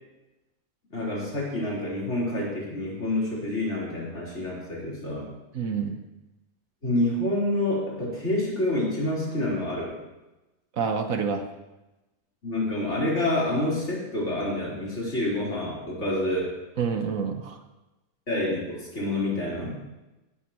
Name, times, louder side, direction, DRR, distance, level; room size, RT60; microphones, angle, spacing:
voice 1, 0.9-5.3 6.8-10.0 12.4-16.6 18.3-19.8, left 1 dB, 50° left, -6 dB, 4.8 m, -28 dB
voice 2, 5.5-6.0 10.8-11.4 16.8-17.6, right 6 dB, 65° right, 6 dB, 1.4 m, -27 dB
16.5 x 11.5 x 3.1 m, 1.0 s
omnidirectional pair, 1.6 m